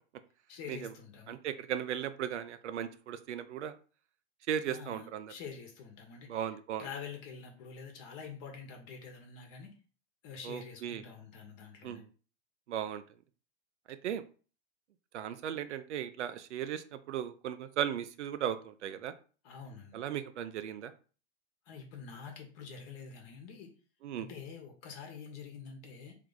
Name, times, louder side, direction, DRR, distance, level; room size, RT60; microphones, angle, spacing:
voice 1, 0.5-1.4 4.7-6.5 6.8-9.7 10.2-12.0 19.4-19.9 21.7-23.7 24.2-26.1, left 6 dB, 45° left, 3 dB, 1.1 m, -46 dB
voice 2, 1.3-3.8 4.5-5.3 6.3-6.8 10.4-11.0 11.8-12.1 12.7-13.0 13.9-14.2 15.1-19.1 19.9-20.9 24.0-24.3, right 9 dB, 85° right, 11 dB, 0.6 m, -37 dB
3.3 x 3.2 x 3.9 m, 0.38 s
hypercardioid pair, 120°, 34 cm